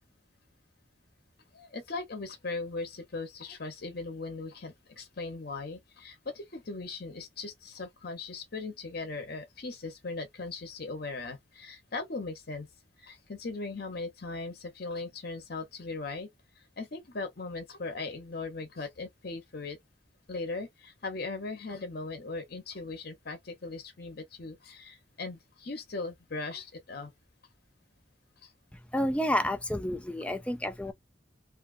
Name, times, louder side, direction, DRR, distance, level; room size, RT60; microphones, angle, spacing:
voice 1, 1.5-12.7 13.0-16.3 16.8-19.8 20.3-27.1 28.4-28.5, left 3 dB, 55° left, 1.0 m, -39 dB
voice 2, 28.7-30.9, left 1 dB, 5° left, 0.4 m, -30 dB
2.7 x 2.4 x 2.5 m
head